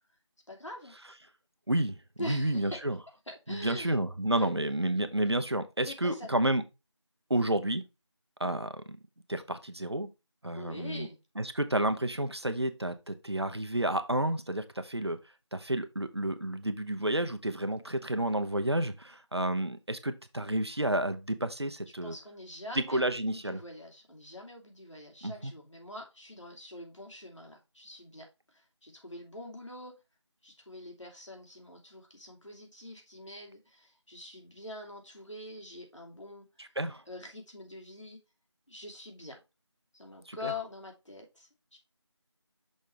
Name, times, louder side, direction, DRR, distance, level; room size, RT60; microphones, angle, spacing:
voice 1, 0.5-0.9 2.2-2.8 3.3-4.0 4.3-4.5 5.8-6.3 10.5-11.2 22.0-29.9 30.4-36.5 37.1-38.2 38.7-39.4 39.9-41.8, left 2 dB, 80° left, 2.8 m, -44 dB
voice 2, 1.7-3.0 3.5-6.6 7.3-7.8 8.4-9.0 9.3-10.1 10.4-11.1 11.4-15.2 15.5-22.1 22.8-23.6 25.2-25.5 36.6-37.0 40.3-40.5, right 1 dB, 60° right, 0.9 m, -30 dB
6.3 x 4.0 x 4.5 m
figure-of-eight pair, 180°, 16 cm